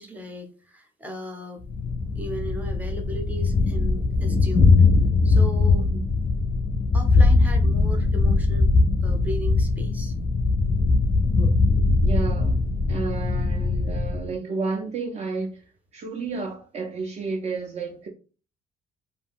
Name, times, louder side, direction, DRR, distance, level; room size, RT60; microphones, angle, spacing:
voice 1, 0.0-1.6 2.1-4.8 5.2-5.9 6.9-8.7 9.0-10.1, equal, 10° right, 0.7 m, -36 dB
Thunder, 1.7-14.3, left 3 dB, 35° left, 0.4 m, -21 dB
voice 2, 12.0-12.6 12.9-15.6 15.9-18.1, right 4 dB, 40° right, 0.5 m, -31 dB
2.5 x 2.2 x 3.5 m
cardioid pair, 110°, 17 cm